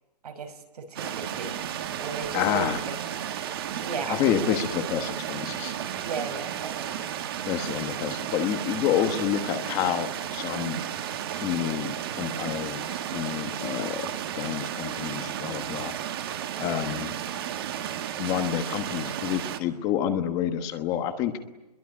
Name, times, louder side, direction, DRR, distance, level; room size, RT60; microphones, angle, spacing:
voice 1, 0.2-1.6 2.0-2.8 3.8-4.6 6.0-6.9, right 4 dB, 70° right, 7 dB, 5.6 m, -35 dB
sound 1, 1.0-19.6, right 10 dB, 35° right, 1.9 m, -33 dB
voice 2, 2.3-2.8 4.1-5.7 7.5-10.8 11.4-12.8 13.1-14.0 14.3-15.9 16.6-17.1 18.2-21.3, left 10 dB, 15° left, 8 dB, 1.2 m, -28 dB
28.0 x 22.5 x 9.6 m, 1.0 s
hypercardioid pair, 175°, 21 cm